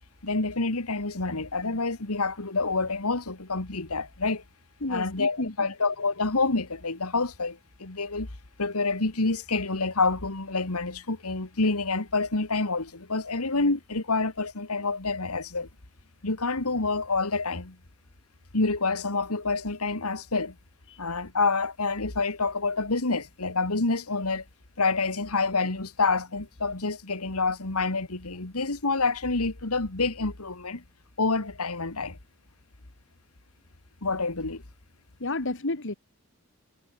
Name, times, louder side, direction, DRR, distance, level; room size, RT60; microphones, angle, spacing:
voice 1, 0.2-4.4 4.9-8.3 8.6-15.7 16.2-17.8 18.5-20.5 21.0-24.4 24.8-30.8 31.2-32.2 34.0-34.6, left 3 dB, 90° left, 2.2 m, -27 dB
voice 2, 4.8-5.7 20.9-21.0 35.2-35.9, left 2 dB, 60° left, 2.1 m, -31 dB
head